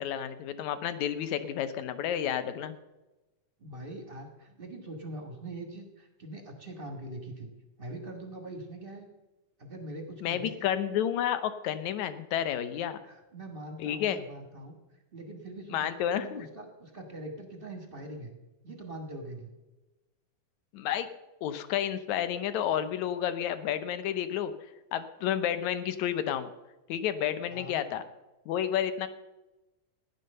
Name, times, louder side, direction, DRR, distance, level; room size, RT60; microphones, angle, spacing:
voice 1, 0.0-2.7 10.2-13.0 13.8-14.2 15.7-16.4 20.7-21.1 21.4-24.5 24.9-26.5 26.9-28.0 28.5-29.1, left 10 dB, 70° left, 11 dB, 1.9 m, -30 dB
voice 2, 3.6-7.5 7.8-9.1 9.6-10.7 13.0-14.8 15.1-18.3 18.6-19.5 27.5-27.8, right 1 dB, 45° right, 3 dB, 0.6 m, -43 dB
15.5 x 10.5 x 6.7 m, 1.1 s
omnidirectional pair, 3.9 m